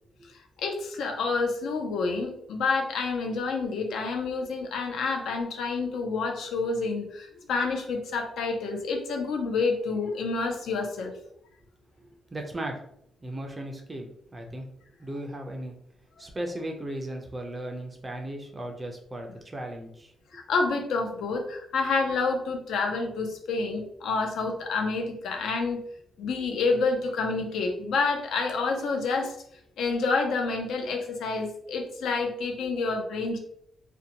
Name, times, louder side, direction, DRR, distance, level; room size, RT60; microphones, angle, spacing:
voice 1, 0.6-11.1 20.3-25.8 26.2-29.4 29.8-33.4, left 4 dB, 75° left, 3 dB, 0.5 m, -28 dB
voice 2, 12.3-12.8 13.2-14.7 15.0-15.7 16.2-20.1, right 1 dB, 15° right, 2 dB, 0.4 m, -36 dB
2.6 x 2.1 x 2.7 m, 0.71 s
wide cardioid pair, 175°, 0 cm